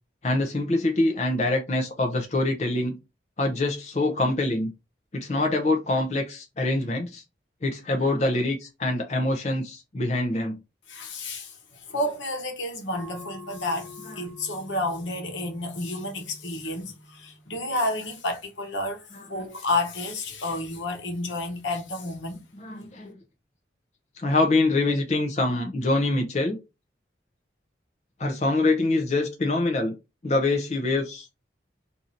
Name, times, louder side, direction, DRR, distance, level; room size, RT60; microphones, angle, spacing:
voice 1, 0.2-3.0 3.4-4.7 5.1-7.2 7.6-10.6 19.1-19.5 22.5-23.2 24.2-26.6 28.2-29.9 30.2-31.3, left 2 dB, 35° left, 0.5 m, -25 dB
voice 2, 10.9-22.4, left 2 dB, 85° left, 1.0 m, -31 dB
sound 1, 12.9-18.0, left 1 dB, ahead, 0.7 m, -46 dB
2.7 x 2.5 x 4.2 m
head